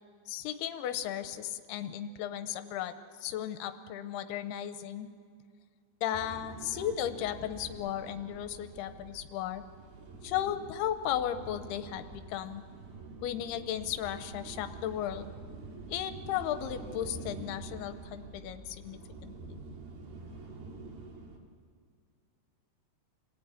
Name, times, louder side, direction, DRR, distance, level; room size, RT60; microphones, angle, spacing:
voice 1, 0.3-5.1 6.0-9.6 10.2-12.6 13.2-15.3 15.9-19.6, left 10 dB, 90° left, 10 dB, 2.9 m, -35 dB
sound 1, 6.1-21.4, right 2 dB, 65° right, 4.3 m, -47 dB
27.5 x 18.0 x 9.7 m, 2.1 s
omnidirectional pair, 4.6 m